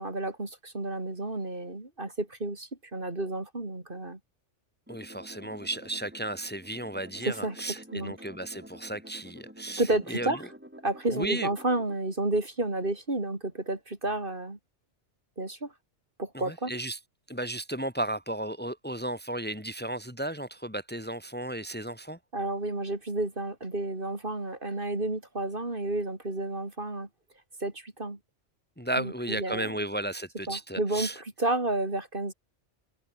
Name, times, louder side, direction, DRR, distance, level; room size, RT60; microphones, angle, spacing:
voice 1, 0.0-4.2 7.2-8.1 9.8-10.4 10.8-14.6 15.4-15.7 16.2-16.7 22.3-27.1 27.6-28.2 29.0-29.8 30.5-32.3, right 2 dB, 45° right, 3.8 m, -31 dB
voice 2, 4.9-9.8 10.1-10.4 11.1-11.5 16.3-17.0 17.3-22.2 28.8-31.2, right 1 dB, 10° left, 2.3 m, -34 dB
sound 1, 4.9-12.0, equal, 10° right, 4.3 m, -49 dB
omnidirectional pair, 1.2 m